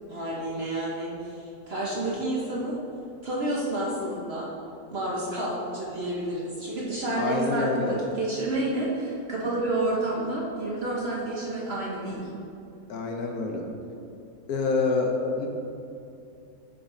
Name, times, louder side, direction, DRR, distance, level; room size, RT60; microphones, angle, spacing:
voice 1, 0.1-2.8 3.2-4.5 4.9-12.3, right 1 dB, 45° right, -4 dB, 1.0 m, -30 dB
voice 2, 7.2-8.0 12.9-13.7 14.5-15.5, left 4 dB, 65° left, 2 dB, 1.2 m, -27 dB
6.9 x 5.8 x 3.8 m, 2.7 s
omnidirectional pair, 1.8 m